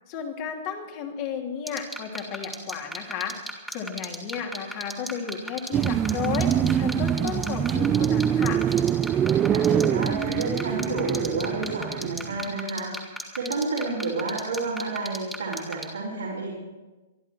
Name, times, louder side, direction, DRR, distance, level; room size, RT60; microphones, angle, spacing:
voice 1, 0.1-3.4 3.7-8.6, left 7 dB, 40° left, 2 dB, 2.9 m, -33 dB
sound 1, 1.7-15.8, right 1 dB, ahead, 2.6 m, -33 dB
sound 2, 5.7-12.4, right 9 dB, 20° right, 0.5 m, -24 dB
voice 2, 9.5-12.9 13.3-16.5, right 3 dB, 80° right, -5 dB, 4.1 m, -30 dB
25.0 x 11.0 x 4.6 m, 1.2 s
figure-of-eight pair, 115°, 0 cm